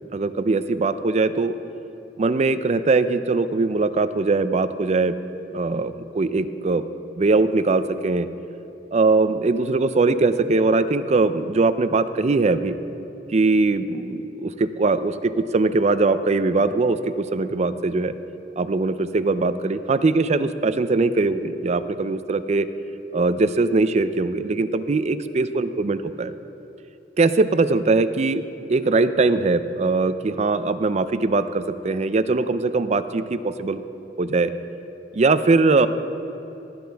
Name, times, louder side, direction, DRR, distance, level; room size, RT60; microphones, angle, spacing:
voice 1, 0.1-1.5 2.2-5.2 5.5-6.8 7.1-8.3 8.9-12.8 13.3-18.1 18.6-22.7 23.1-26.3 27.2-28.4 28.7-33.8 34.2-34.5 35.1-35.9, right 3 dB, 40° right, 12 dB, 0.4 m, -21 dB
19.0 x 9.5 x 3.4 m, 2.9 s
head